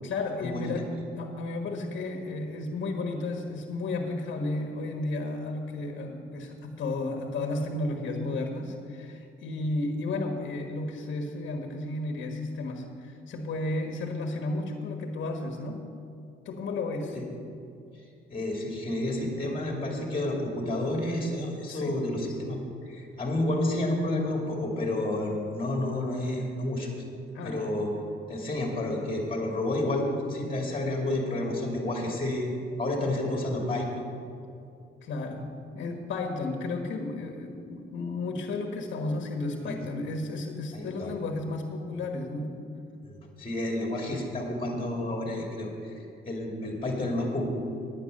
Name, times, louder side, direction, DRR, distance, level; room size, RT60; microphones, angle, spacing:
voice 1, 0.0-0.9 1.2-15.9 16.4-17.2 21.7-22.0 27.3-27.8 35.0-42.5, left 2 dB, 65° left, 3 dB, 1.4 m, -33 dB
voice 2, 18.3-22.6 22.8-26.9 27.4-27.9 28.3-32.5 32.8-34.0 39.6-39.8 40.7-41.1 43.1-47.5, left 1 dB, 25° left, 0 dB, 2.5 m, -30 dB
9.9 x 9.6 x 6.5 m, 2.5 s
cardioid pair, 90°, 20 cm